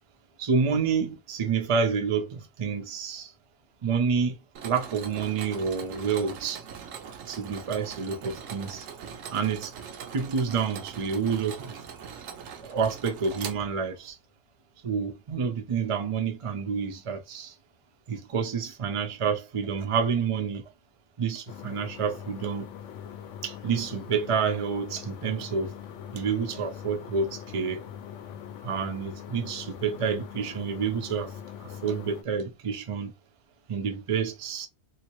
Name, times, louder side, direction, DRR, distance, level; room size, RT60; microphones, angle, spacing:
voice 1, 0.4-3.3 3.8-4.4 4.6-6.6 7.3-8.9 9.3-9.7 10.1-11.8 12.6-14.2 14.8-17.6 18.1-20.6 21.2-22.7 23.4-25.7 26.1-27.8 28.6-31.3 31.6-33.1 33.7-34.7, right 6 dB, 50° right, 0.4 m, -28 dB
Mechanisms, 4.5-14.1, right 7 dB, 80° right, 1.0 m, -41 dB
sound 1, 21.5-32.2, left 9 dB, 70° left, 0.9 m, -42 dB
3.1 x 2.8 x 3.0 m
omnidirectional pair, 1.4 m